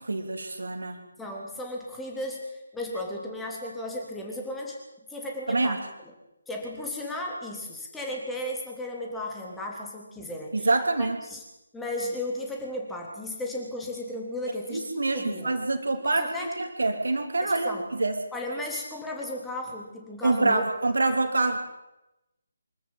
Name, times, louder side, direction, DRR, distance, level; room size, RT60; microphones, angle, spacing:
voice 1, 0.0-1.0 5.5-5.8 10.5-11.2 14.7-18.2 20.2-21.6, right 2 dB, 60° right, 6 dB, 3.1 m, -26 dB
voice 2, 1.2-4.8 5.1-6.1 6.5-10.7 11.0-11.4 11.7-15.5 16.0-16.7 17.4-17.9 18.3-20.6, left 1 dB, 5° left, -1 dB, 3.6 m, -35 dB
25.0 x 14.0 x 8.9 m, 0.93 s
figure-of-eight pair, 145°, 0 cm